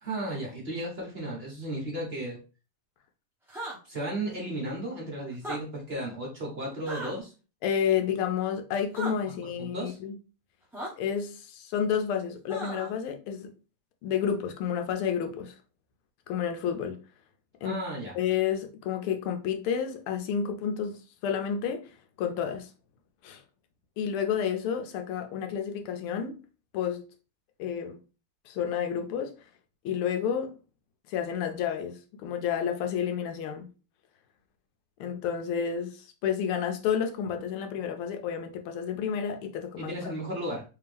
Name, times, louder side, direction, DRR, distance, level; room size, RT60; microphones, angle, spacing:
voice 1, 0.0-2.4 3.9-7.3 9.6-10.0 17.6-18.1 39.8-40.6, right 1 dB, 40° right, 0.9 m, -34 dB
sound 1, 3.5-3.8 5.3-5.6 6.9-7.1 8.9-9.1 10.7-10.9 12.5-12.9, right 1 dB, ahead, 0.5 m, -36 dB
voice 2, 7.6-10.2 11.0-13.5 14.0-15.6 16.3-17.0 17.6-17.8 18.1-22.7 23.2-23.4 24.0-26.4 26.7-27.0 27.6-28.0 28.5-29.4 29.8-30.6 31.1-33.7 35.0-39.9, left 8 dB, 80° left, 1.5 m, -30 dB
3.4 x 3.1 x 3.3 m
omnidirectional pair, 2.4 m